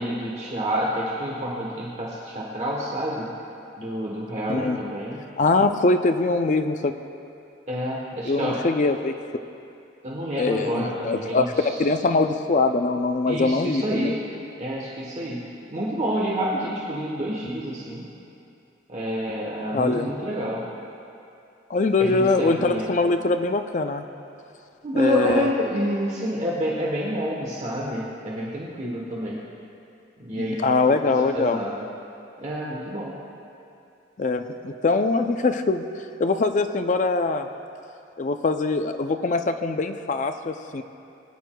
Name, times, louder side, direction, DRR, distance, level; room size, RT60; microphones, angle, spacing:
voice 1, 0.0-3.3 3.8-5.2 7.7-8.6 10.0-11.7 13.2-14.2 14.6-15.4 15.7-18.1 18.9-20.6 22.0-22.9 24.8-29.4 30.2-31.0 31.3-31.8 32.4-33.1, equal, 35° right, -4 dB, 1.1 m, -28 dB
voice 2, 5.4-7.0 8.3-9.1 10.4-14.1 19.7-20.1 21.7-24.0 25.0-25.5 30.3-31.6 34.2-35.9 36.2-37.5 38.2-40.8, left 3 dB, 40° left, 8 dB, 0.4 m, -23 dB
20.0 x 9.5 x 2.3 m, 2.7 s
head